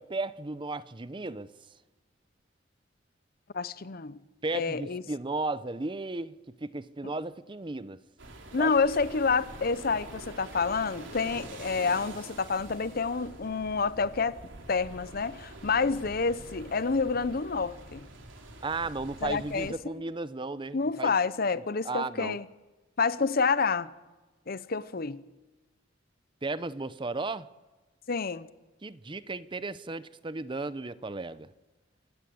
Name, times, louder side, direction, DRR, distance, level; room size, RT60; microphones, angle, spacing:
voice 1, 0.0-1.5 4.4-6.3 6.6-8.0 8.6-8.7 18.6-21.1 21.8-22.4 26.4-27.5 28.8-31.5, right 3 dB, 25° right, 0.7 m, -34 dB
voice 2, 3.5-4.2 4.5-5.0 7.0-7.1 8.5-14.4 14.7-18.0 19.2-19.7 20.7-22.5 23.0-23.9 24.5-25.2 28.1-28.5, left 4 dB, 50° left, 0.7 m, -28 dB
sound 1, 8.2-19.7, right 2 dB, 90° right, 3.4 m, -46 dB
27.0 x 15.5 x 7.8 m
head